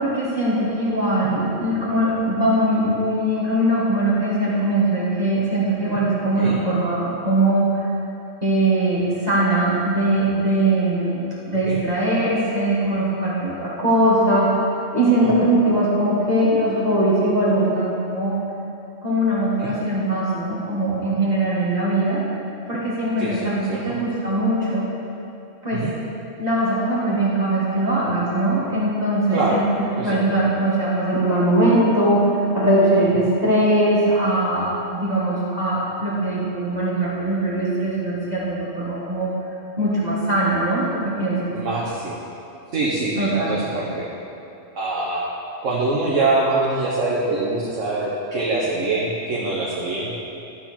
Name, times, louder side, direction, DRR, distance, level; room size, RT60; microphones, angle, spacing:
voice 1, 0.0-7.9 8.4-14.6 14.9-18.4 19.0-22.2 22.7-24.9 25.6-25.9 26.4-39.3 39.8-41.5 43.2-43.6, right 1 dB, 35° right, -7 dB, 1.9 m, -21 dB
voice 2, 23.2-24.0 25.7-25.9 29.3-29.6 30.0-30.2 41.5-42.2 42.7-44.1 44.7-45.2 45.6-50.1, right 2 dB, 85° right, -5 dB, 1.5 m, -24 dB
12.5 x 7.3 x 4.4 m, 2.7 s
omnidirectional pair, 1.3 m